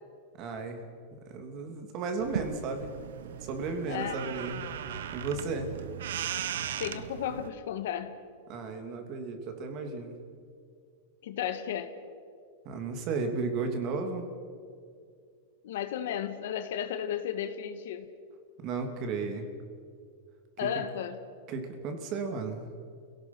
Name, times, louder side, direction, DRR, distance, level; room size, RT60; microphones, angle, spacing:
voice 1, 0.4-0.8 1.3-2.9 3.2-4.6 5.1-5.7 8.5-10.2 12.6-14.3 18.6-19.5 20.6-20.7 21.5-22.7, right 4 dB, 35° right, 5 dB, 2.8 m, -34 dB
sound 1, 2.2-7.5, right 9 dB, 85° right, 1.2 m, -37 dB
voice 2, 3.9-4.2 6.8-8.2 11.2-11.9 15.6-18.1 20.6-21.2, left 9 dB, 75° left, 10 dB, 1.8 m, -34 dB
29.5 x 17.5 x 6.1 m, 2.3 s
supercardioid pair, 160°, 0 cm